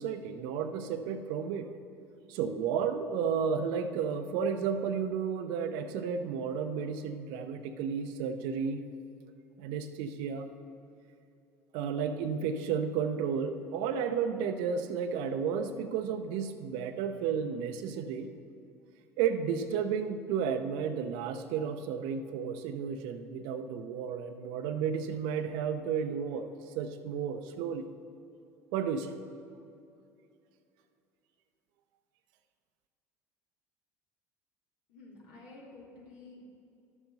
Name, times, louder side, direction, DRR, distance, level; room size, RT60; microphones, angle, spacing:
voice 1, 0.0-1.7 2.3-8.8 9.6-10.5 11.7-18.3 19.2-27.9 28.7-29.1, right 6 dB, 65° right, 8 dB, 0.7 m, -32 dB
voice 2, 34.9-36.5, left 2 dB, 70° left, -4 dB, 2.6 m, -51 dB
12.0 x 7.0 x 4.1 m, 2.6 s
hypercardioid pair, 70°, 8 cm